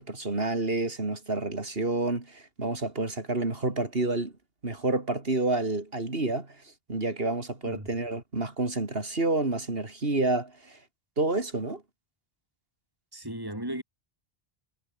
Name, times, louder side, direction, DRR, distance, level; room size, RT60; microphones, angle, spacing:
voice 1, 0.0-4.3 4.6-6.5 6.9-10.8 11.2-11.8, right 2 dB, 65° right, 3.5 m, -29 dB
voice 2, 13.1-13.8, right 1 dB, 20° right, 6.6 m, -36 dB
omnidirectional pair, 1.1 m